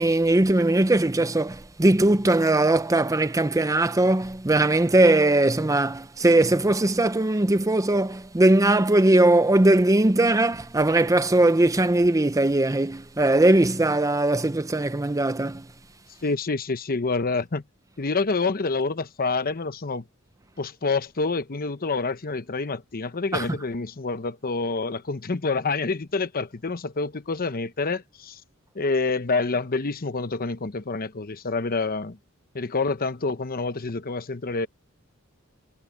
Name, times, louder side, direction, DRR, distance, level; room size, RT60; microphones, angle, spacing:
voice 1, 0.0-15.7 23.3-23.5, right 2 dB, 15° right, 0.6 m, -20 dB
voice 2, 16.2-17.6 18.0-20.0 20.6-28.4 28.7-32.2 32.5-34.7, left 3 dB, 45° left, 0.9 m, -27 dB
head